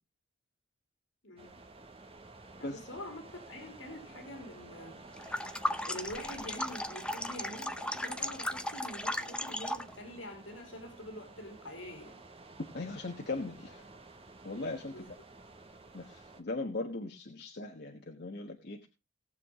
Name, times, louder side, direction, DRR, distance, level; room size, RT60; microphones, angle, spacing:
voice 1, 1.2-1.6 2.6-5.0 5.8-12.2 14.9-15.1, left 1 dB, 85° left, 4 dB, 3.2 m, -45 dB
sound 1, 1.4-16.4, right 2 dB, 30° right, 1.6 m, -52 dB
sound 2, 5.2-9.9, left 1 dB, 5° left, 0.6 m, -36 dB
voice 2, 12.7-13.9 14.4-15.1 15.9-18.9, left 2 dB, 60° left, 3 dB, 1.4 m, -39 dB
18.5 x 7.4 x 3.7 m, 0.27 s
head